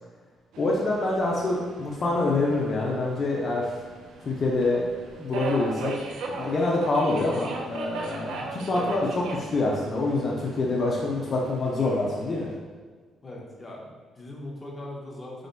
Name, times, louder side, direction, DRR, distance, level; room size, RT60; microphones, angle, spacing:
Subway metro underground, 0.5-12.6, right 3 dB, 85° right, 0.5 m, -39 dB
voice 1, 0.6-3.6 4.3-4.9 5.2-5.9 6.3-9.1 9.5-12.5, left 2 dB, 50° left, -3 dB, 0.6 m, -26 dB
voice 2, 13.2-15.5, left 1 dB, 30° left, -3 dB, 0.9 m, -40 dB
5.0 x 3.8 x 2.2 m, 1.5 s
cardioid pair, 90°, 0 cm